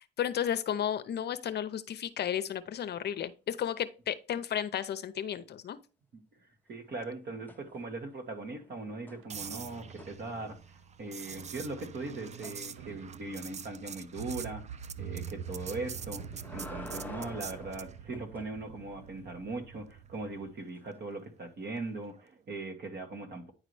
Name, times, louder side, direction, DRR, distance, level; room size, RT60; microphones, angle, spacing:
voice 1, 0.2-5.8, left 9 dB, 55° left, 0.6 m, -33 dB
voice 2, 6.1-10.6 11.0-16.2 16.5-23.5, right 3 dB, 55° right, 1.7 m, -40 dB
sound 1, 7.5-8.1 8.4-10.8 12.4-12.6 16.0-18.5 20.8-20.9, left 2 dB, 10° left, 0.6 m, -48 dB
sound 2, 9.2-20.5, right 8 dB, 85° right, 0.6 m, -46 dB
sound 3, 9.3-18.0 22.1-22.4, right 7 dB, 35° right, 0.4 m, -46 dB
9.6 x 4.0 x 3.2 m
cardioid pair, 90°, 20 cm